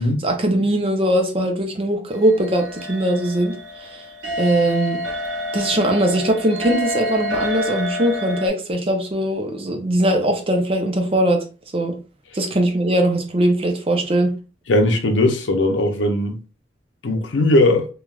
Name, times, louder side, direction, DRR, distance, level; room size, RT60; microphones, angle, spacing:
voice 1, 0.0-3.5 3.8-4.0 4.4-5.0 5.5-11.4 11.7-12.0 12.3-14.3, right 1 dB, 30° right, 0.6 m, -20 dB
sound 1, 2.1-8.5, left 1 dB, 75° right, 1.1 m, -28 dB
voice 2, 14.7-16.4 17.0-17.9, left 1 dB, 90° left, 0.6 m, -18 dB
3.2 x 2.3 x 2.3 m
head